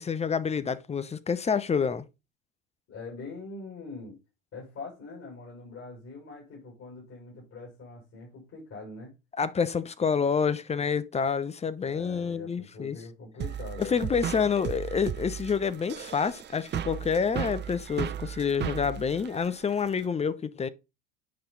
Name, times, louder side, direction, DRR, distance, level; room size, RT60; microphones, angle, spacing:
voice 1, 0.0-2.0 9.4-13.0 13.8-20.7, left 6 dB, 20° left, 0.9 m, -28 dB
voice 2, 2.9-4.2 4.5-9.1 11.8-14.2, left 3 dB, 50° left, 6.1 m, -43 dB
sound 1, 13.4-20.0, right 10 dB, 35° right, 0.8 m, -35 dB
8.9 x 5.7 x 4.1 m
hypercardioid pair, 80°, 31 cm